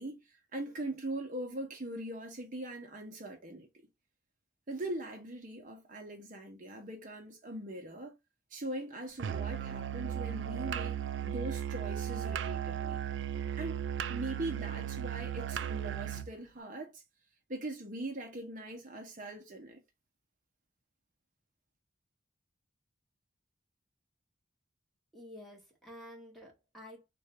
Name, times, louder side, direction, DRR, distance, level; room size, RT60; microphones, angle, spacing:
voice 1, 0.0-3.7 4.7-8.1 8.5-13.0 13.6-13.8 14.1-17.0 17.5-19.8, right 1 dB, 45° right, 0.8 m, -41 dB
Musical instrument, 9.2-16.3, right 9 dB, 70° right, 0.4 m, -36 dB
voice 2, 25.1-27.1, left 1 dB, ahead, 1.3 m, -50 dB
3.7 x 2.6 x 3.2 m
head